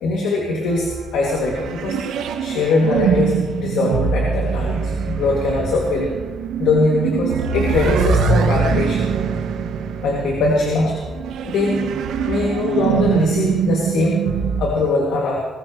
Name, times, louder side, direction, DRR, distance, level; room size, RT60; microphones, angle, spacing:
voice 1, 0.0-2.0 2.4-6.2 6.6-9.1 10.0-11.0 11.4-11.9 12.2-14.2 14.6-15.5, left 2 dB, 85° left, -2 dB, 2.4 m, -21 dB
sound 1, 0.7-14.7, right 6 dB, 80° right, 1.1 m, -23 dB
20.5 x 15.5 x 3.2 m, 1.3 s
cardioid pair, 90°, 0 cm